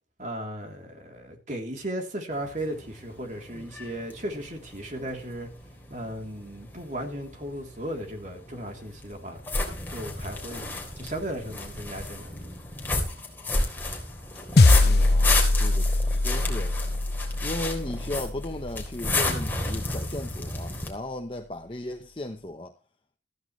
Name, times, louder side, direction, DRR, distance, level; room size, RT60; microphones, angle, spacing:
voice 1, 0.2-5.5 5.9-9.4 9.9-10.7 11.0-12.5, right 1 dB, 45° right, 3.3 m, -36 dB
sound 1, 2.3-20.9, left 2 dB, 10° left, 3.5 m, -33 dB
sound 2, 14.6-19.1, left 2 dB, 70° left, 0.8 m, -22 dB
voice 2, 14.8-16.8 17.4-22.7, left 1 dB, 30° left, 1.0 m, -36 dB
15.0 x 14.5 x 3.2 m
head